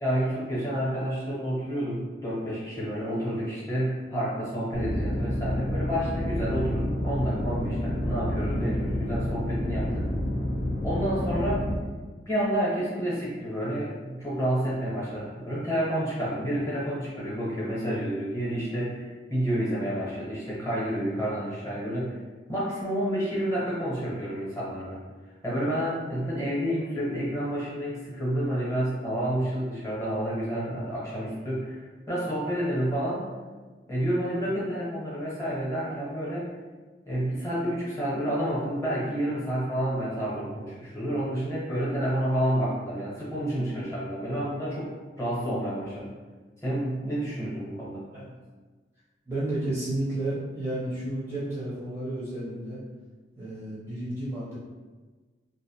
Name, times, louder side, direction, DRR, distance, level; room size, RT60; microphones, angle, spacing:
voice 1, 0.0-10.1 10.8-11.7 12.3-22.2 22.5-25.0 25.4-33.3 33.9-36.5 37.1-46.1 46.6-48.0, equal, 15° left, -8 dB, 0.8 m, -29 dB
sound 1, 4.7-11.8, left 1 dB, 80° left, 0.4 m, -29 dB
voice 2, 49.3-52.8 53.4-54.6, right 1 dB, 15° right, -9 dB, 0.5 m, -32 dB
2.4 x 2.0 x 2.8 m, 1.3 s
head